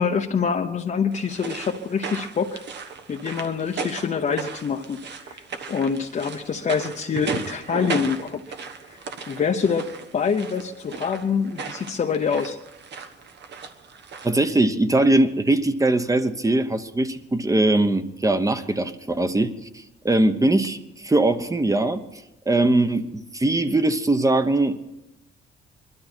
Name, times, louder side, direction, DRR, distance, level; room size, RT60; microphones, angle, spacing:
voice 1, 0.0-2.6 3.1-5.4 5.7-9.0 9.3-9.9 10.1-12.6, left 6 dB, 40° left, 1 dB, 0.9 m, -25 dB
sound 1, 1.1-14.4, right 5 dB, 60° right, 1.3 m, -36 dB
voice 2, 14.2-20.8 21.0-24.8, right 2 dB, 15° right, 10 dB, 1.0 m, -21 dB
22.0 x 12.5 x 4.5 m, 0.93 s
cardioid pair, 90°, 20 cm